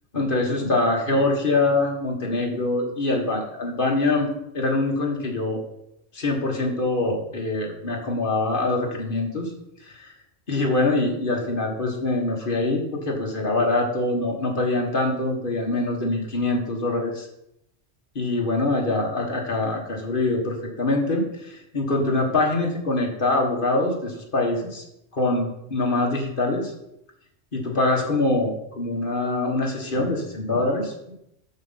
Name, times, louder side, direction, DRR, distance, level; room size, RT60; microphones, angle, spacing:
voice 1, 0.1-5.6 6.1-9.5 9.8-10.1 10.5-17.3 18.1-24.8 25.1-26.7 27.5-30.9, left 2 dB, 50° left, 0 dB, 1.7 m, -24 dB
6.4 x 6.4 x 5.6 m, 0.81 s
omnidirectional pair, 1.2 m